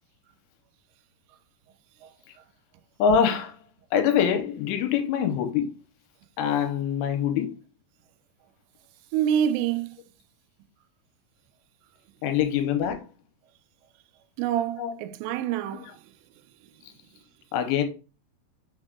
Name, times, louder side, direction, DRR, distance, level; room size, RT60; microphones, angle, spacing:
voice 1, 3.0-3.6 3.9-5.7 6.4-7.5 12.2-13.0 14.8-14.9 15.7-16.0 17.5-17.8, left 8 dB, 90° left, 2.8 m, -24 dB
voice 2, 9.1-9.9 14.4-15.9, right 9 dB, 85° right, 2.8 m, -26 dB
6.0 x 3.7 x 2.2 m
omnidirectional pair, 5.0 m